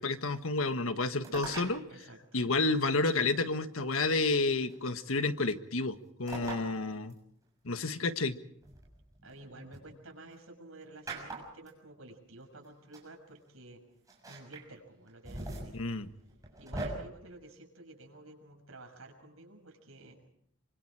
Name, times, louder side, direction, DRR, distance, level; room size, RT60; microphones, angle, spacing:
voice 1, 0.0-1.8 2.3-7.1 7.6-8.4 15.7-16.1, left 3 dB, 80° left, 9 dB, 1.5 m, -30 dB
sound 1, 1.2-1.8 3.1-3.2 4.7-5.1 6.3-6.7 7.1-7.2 8.6-9.8 11.1-11.7 12.6-12.7 12.9-13.1 14.1-14.6 15.1-16.9, right 2 dB, 15° right, 6.5 m, -41 dB
voice 2, 1.9-2.5 9.2-13.8 14.3-15.8 16.6-20.3, right 2 dB, 85° right, 4 dB, 6.3 m, -52 dB
27.0 x 25.0 x 4.9 m, 0.72 s
head